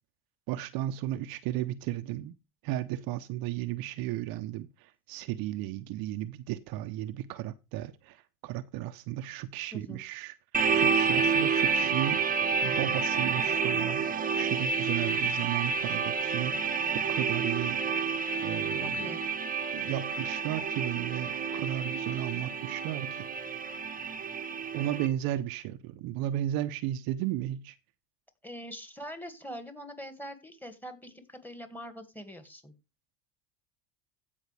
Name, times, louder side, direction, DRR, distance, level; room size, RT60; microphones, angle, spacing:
voice 1, 0.5-2.3 2.6-10.3 10.7-12.3 12.6-16.6 16.9-17.8 18.4-19.0 19.7-23.3 24.7-27.7, right 13 dB, 55° right, 0.8 m, -34 dB
voice 2, 9.7-10.0 18.8-19.2 28.4-32.7, equal, 5° left, 2.0 m, -43 dB
sound 1, 10.5-25.1, right 5 dB, 20° right, 1.1 m, -29 dB
16.0 x 5.4 x 3.4 m
supercardioid pair, 105°, 42 cm